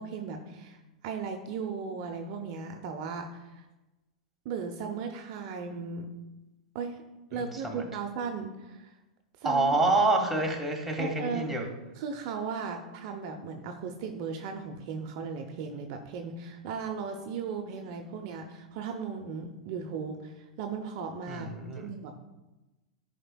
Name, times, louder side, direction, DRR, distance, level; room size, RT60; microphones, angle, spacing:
voice 1, 0.0-3.6 4.4-6.1 6.7-7.0 7.3-9.0 9.4-9.8 11.0-11.7 12.0-22.2, right 5 dB, 50° right, 4 dB, 0.7 m, -37 dB
voice 2, 7.3-7.8 9.4-11.6 21.3-21.9, right 2 dB, 5° right, -1 dB, 1.5 m, -27 dB
11.0 x 5.0 x 2.2 m, 1.0 s
hypercardioid pair, 100°, 4 cm